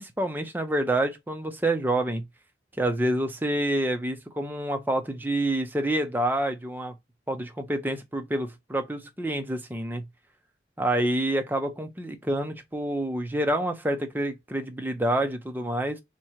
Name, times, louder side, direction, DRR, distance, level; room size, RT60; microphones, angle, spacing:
voice 1, 0.0-2.2 2.8-6.9 7.3-10.0 10.8-16.0, right 1 dB, 10° right, 0.6 m, -27 dB
3.6 x 3.0 x 4.4 m
head